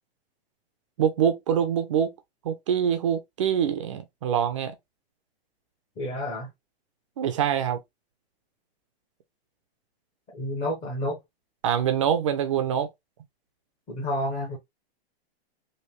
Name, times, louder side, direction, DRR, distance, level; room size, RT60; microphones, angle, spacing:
voice 1, 1.0-2.1 2.4-4.7 7.2-7.8 11.6-12.9, right 8 dB, 30° right, 0.4 m, -24 dB
voice 2, 6.0-6.5 10.3-11.2 13.9-14.6, left 1 dB, 15° left, 0.8 m, -30 dB
3.3 x 2.6 x 2.9 m
hypercardioid pair, 160°, 32 cm